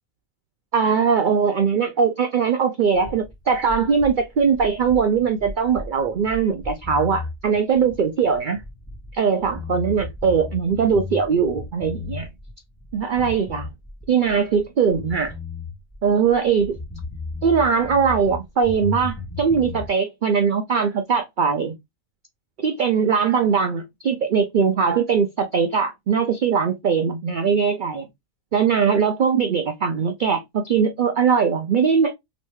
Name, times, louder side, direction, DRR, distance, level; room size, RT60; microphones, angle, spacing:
voice 1, 0.7-8.6 9.1-12.3 12.9-13.7 14.1-15.3 16.0-16.8 17.4-21.7 22.6-28.1 28.5-32.1, right 6 dB, 85° right, 0.4 m, -21 dB
sound 1, 3.0-9.1 9.4-12.5 12.8-14.6 14.9-18.4 18.6-19.9, left 3 dB, 5° left, 1.5 m, -34 dB
3.1 x 3.0 x 3.2 m
omnidirectional pair, 1.4 m